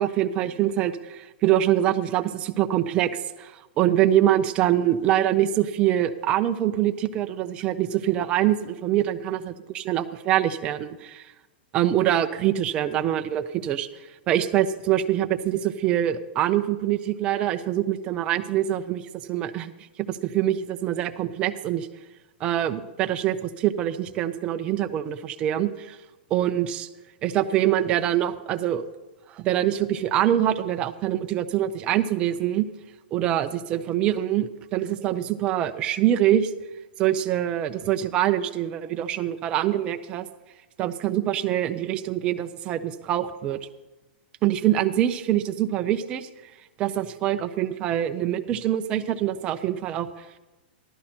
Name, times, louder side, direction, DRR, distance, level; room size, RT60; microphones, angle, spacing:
voice 1, 0.0-3.1 3.4-11.2 11.7-13.9 14.3-19.0 19.3-19.7 20.0-21.9 22.4-26.0 26.3-26.9 27.2-28.8 29.4-32.7 33.1-36.5 37.0-40.3 40.8-43.6 44.4-46.3 46.8-50.1, right 12 dB, 20° right, 7 dB, 0.5 m, -24 dB
14.0 x 12.0 x 4.3 m, 1.1 s
hypercardioid pair, 175°, 6 cm